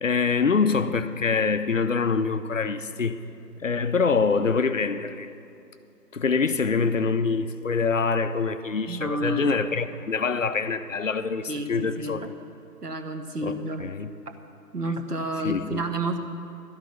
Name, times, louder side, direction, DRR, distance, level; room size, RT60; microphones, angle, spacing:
voice 1, 0.0-3.2 3.6-5.3 6.1-12.3 13.4-14.1 15.4-15.8, left 5 dB, 50° left, 0.5 m, -25 dB
voice 2, 8.9-9.6 11.5-12.3 12.8-13.9 14.7-16.2, right 1 dB, 70° right, 1.3 m, -30 dB
12.5 x 6.3 x 9.2 m
figure-of-eight pair, 155°, 49 cm